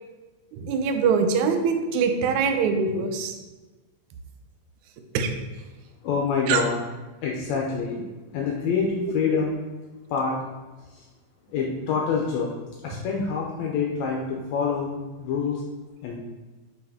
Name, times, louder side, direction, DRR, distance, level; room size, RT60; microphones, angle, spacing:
voice 1, 0.5-3.3 5.1-5.3 6.5-6.6, right 5 dB, 85° right, 6 dB, 2.0 m, -23 dB
voice 2, 6.0-6.8 7.2-8.1 8.3-9.6 10.1-10.4 10.9-11.1 11.5-12.5 12.8-15.6 16.0-16.2, left 5 dB, 75° left, -2 dB, 1.8 m, -26 dB
5.9 x 4.9 x 3.5 m, 1.2 s
omnidirectional pair, 3.4 m